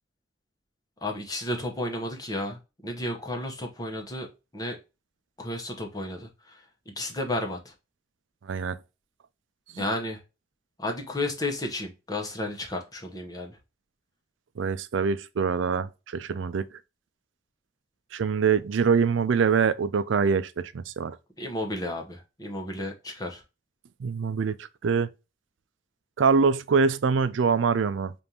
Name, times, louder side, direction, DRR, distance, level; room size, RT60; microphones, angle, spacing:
voice 1, 1.0-4.3 4.5-4.8 5.4-6.6 7.0-7.7 9.8-10.2 10.8-13.6 21.4-23.4, left 1 dB, 20° left, 0.9 m, -32 dB
voice 2, 8.4-8.8 9.7-9.8 14.6-16.7 18.1-21.2 24.0-25.1 26.2-28.1, right 5 dB, 80° right, 0.4 m, -24 dB
5.2 x 2.6 x 2.8 m
head